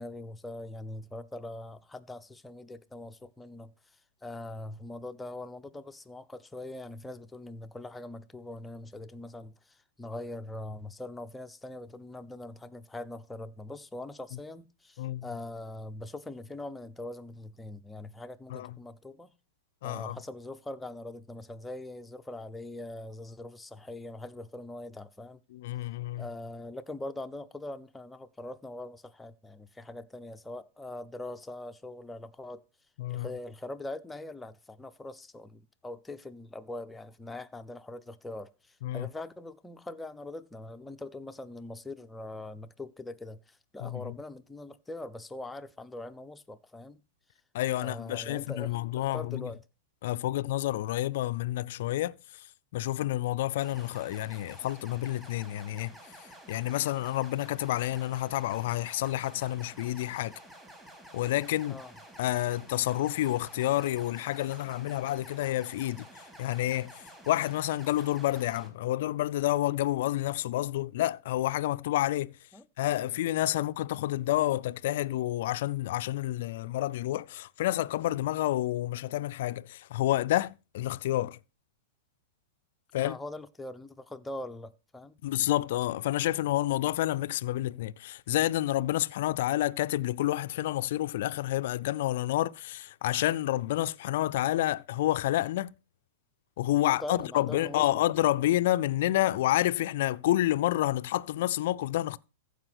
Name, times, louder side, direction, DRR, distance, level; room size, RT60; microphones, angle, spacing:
voice 1, 0.0-3.7 4.2-19.3 19.8-25.4 26.2-32.6 33.1-47.0 47.8-49.6 61.7-61.9 72.5-72.6 73.6-73.7 83.0-85.2 96.9-97.9, left 2 dB, 10° left, 0.8 m, -42 dB
voice 2, 19.8-20.2 25.5-26.3 33.0-33.3 38.8-39.1 43.8-44.1 47.5-49.5 50.0-52.5 52.7-56.0 56.5-60.3 61.1-61.8 62.2-66.1 66.4-72.4 72.8-81.4 82.9-83.2 85.2-95.7 96.6-102.2, left 15 dB, 65° left, 0.5 m, -29 dB
sound 1, 53.6-68.7, right 1 dB, 10° right, 4.1 m, -51 dB
14.5 x 5.1 x 6.0 m
hypercardioid pair, 115°, 0 cm